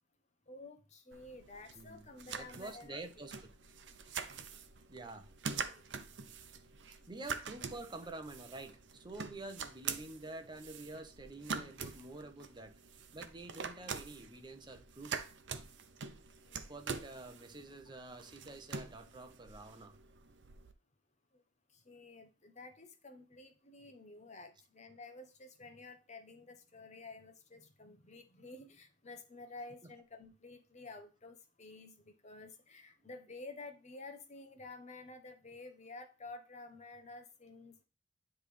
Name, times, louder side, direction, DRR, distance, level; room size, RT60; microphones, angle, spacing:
voice 1, 0.5-3.0 5.0-5.1 5.5-6.0 16.4-16.6 21.3-21.4 21.7-37.8, left 3 dB, 40° left, 1.0 m, -51 dB
sound 1, 1.1-20.7, right 5 dB, 75° right, 0.7 m, -45 dB
voice 2, 1.8-3.3 4.9-5.3 7.1-12.8 13.1-15.2 16.7-20.0 29.8-29.9, right 2 dB, 25° right, 0.8 m, -48 dB
9.7 x 3.4 x 3.3 m
head